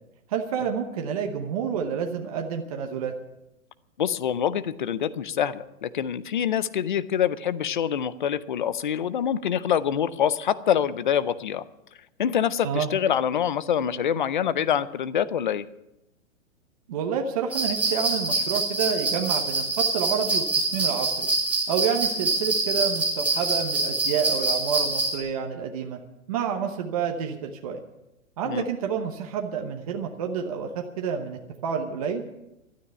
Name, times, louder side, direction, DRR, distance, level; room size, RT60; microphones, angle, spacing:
voice 1, 0.3-3.1 12.6-12.9 16.9-21.3 21.7-26.0 26.3-27.8 28.4-32.2, right 7 dB, 25° right, 3 dB, 0.9 m, -29 dB
voice 2, 4.0-11.6 12.2-15.6 28.5-28.7, left 9 dB, 40° left, 16 dB, 0.5 m, -25 dB
sound 1, 17.5-25.1, right 2 dB, 5° right, 1.5 m, -25 dB
12.5 x 9.9 x 9.8 m, 0.91 s
hypercardioid pair, 175°, 41 cm